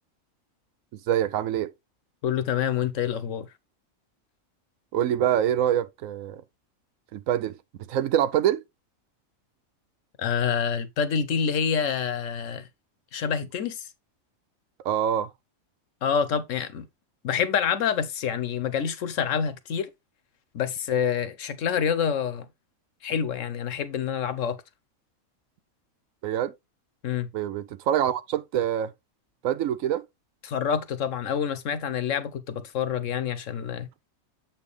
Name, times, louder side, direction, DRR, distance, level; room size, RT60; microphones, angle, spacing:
voice 1, 1.1-1.7 4.9-6.4 7.1-7.6 7.9-8.6 14.8-15.3 26.2-26.5 27.3-28.9 29.4-30.0, right 10 dB, 75° right, 1.0 m, -25 dB
voice 2, 2.2-3.5 10.2-12.7 13.1-13.9 16.0-16.9 17.2-19.9 20.5-22.5 23.0-24.6 27.0-27.3 30.4-33.9, left 7 dB, 70° left, 1.1 m, -27 dB
7.6 x 4.4 x 3.3 m
omnidirectional pair, 1.4 m